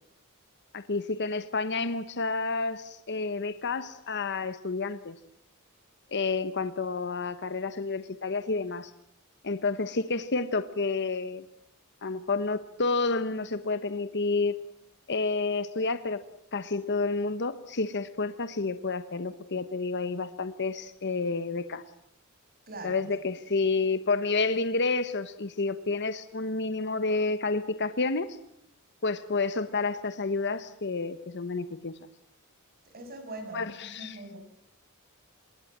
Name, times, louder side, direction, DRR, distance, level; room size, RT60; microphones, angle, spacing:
voice 1, 0.7-5.1 6.1-8.9 9.4-11.4 12.0-14.6 15.1-16.2 16.5-21.8 22.8-28.4 29.0-31.9 33.5-34.2, left 3 dB, 55° left, 12 dB, 1.2 m, -30 dB
voice 2, 22.7-23.1 32.9-34.4, right 2 dB, 45° right, 6 dB, 6.5 m, -42 dB
26.0 x 22.0 x 7.5 m, 0.73 s
head